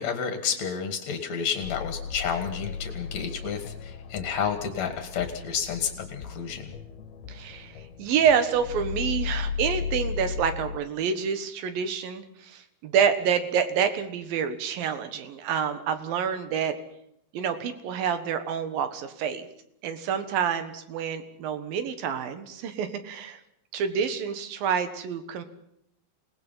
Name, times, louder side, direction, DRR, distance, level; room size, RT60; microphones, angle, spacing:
voice 1, 0.0-6.7, left 7 dB, 50° left, 7 dB, 2.6 m, -30 dB
sound 1, 1.6-10.8, left 6 dB, 80° left, 3.1 m, -36 dB
voice 2, 7.3-16.8 17.3-19.5 19.8-23.4 23.7-25.4, right 7 dB, 70° right, 10 dB, 3.1 m, -27 dB
27.5 x 19.0 x 5.7 m, 0.74 s
omnidirectional pair, 4.5 m